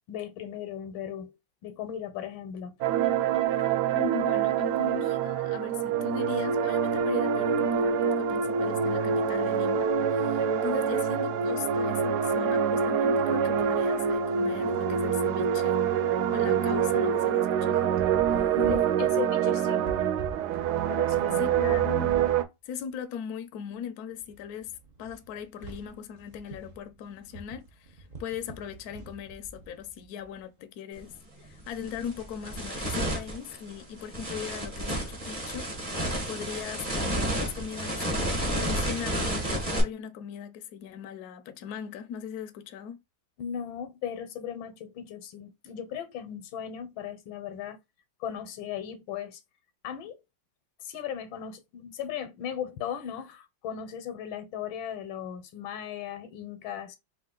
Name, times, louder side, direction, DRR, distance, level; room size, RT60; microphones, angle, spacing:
voice 1, 0.1-1.3 1.6-2.8 18.3-19.9 20.9-21.7 43.4-47.8 48.2-49.4 49.8-50.2 50.8-57.0, left 9 dB, 85° left, 1.5 m, -37 dB
sound 1, 2.8-22.4, right 7 dB, 75° right, 0.9 m, -26 dB
voice 2, 3.9-15.8 16.3-18.0 21.4-22.2 22.6-24.7 25.0-31.1 31.4-43.0, left 8 dB, 65° left, 0.9 m, -39 dB
sound 2, 18.0-22.4 22.7-22.9 23.7-23.8 24.1-30.4 31.1-31.6 33.7-34.8, right 3 dB, 50° right, 0.5 m, -46 dB
sound 3, 31.0-31.1 31.6-39.8, right 1 dB, 25° right, 1.0 m, -31 dB
4.7 x 2.5 x 3.7 m
omnidirectional pair, 2.2 m